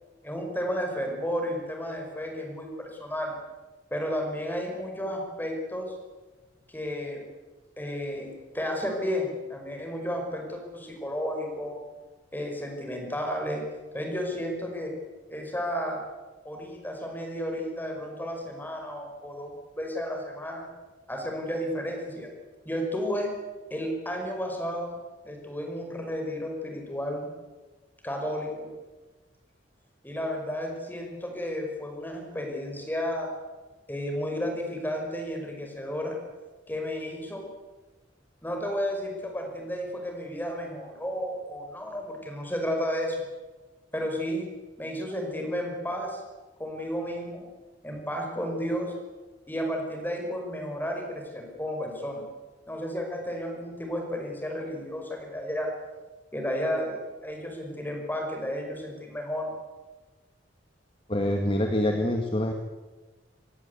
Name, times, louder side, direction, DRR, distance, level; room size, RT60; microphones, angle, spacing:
voice 1, 0.2-3.4 3.9-5.9 6.7-7.2 7.8-11.8 12.3-13.6 13.9-14.9 15.3-16.0 16.4-20.7 21.1-22.3 22.7-23.3 23.7-25.0 25.2-27.3 28.0-28.7 30.0-33.3 33.9-36.2 36.7-37.5 38.4-43.3 43.9-44.5 44.8-46.2 46.6-47.5 47.8-48.9 49.5-52.2 52.7-55.7 56.3-59.5, equal, 10° left, 2 dB, 5.4 m, -32 dB
voice 2, 61.1-62.5, left 1 dB, 30° left, 4 dB, 1.8 m, -25 dB
25.5 x 18.0 x 8.5 m, 1.3 s
head